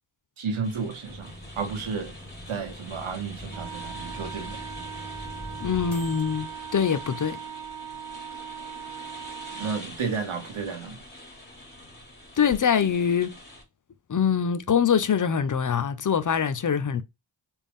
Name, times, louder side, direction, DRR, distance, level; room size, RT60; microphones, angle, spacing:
voice 1, 0.4-2.1 2.5-4.6 9.5-11.0, right 5 dB, 85° right, 1.1 m, -32 dB
sound 1, 0.6-13.6, left 1 dB, 20° left, 2.0 m, -45 dB
sound 2, 1.1-7.5, left 1 dB, ahead, 2.0 m, -43 dB
Wind instrument woodwind instrument, 3.5-9.9, right 9 dB, 60° right, 0.8 m, -40 dB
voice 2, 5.6-7.4 12.4-13.3 14.1-17.0, left 7 dB, 40° left, 0.5 m, -24 dB
3.5 x 2.5 x 3.4 m
cardioid pair, 40°, 47 cm